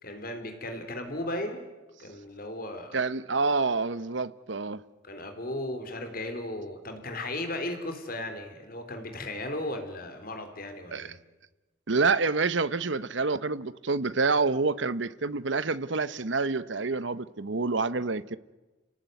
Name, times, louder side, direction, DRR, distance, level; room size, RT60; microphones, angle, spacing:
voice 1, 0.0-1.7 2.0-3.0 5.0-11.2, left 1 dB, 50° left, 3.8 m, -36 dB
voice 2, 2.9-4.8 10.9-11.1 11.9-18.4, right 4 dB, 70° right, 1.0 m, -27 dB
30.0 x 18.0 x 9.3 m
head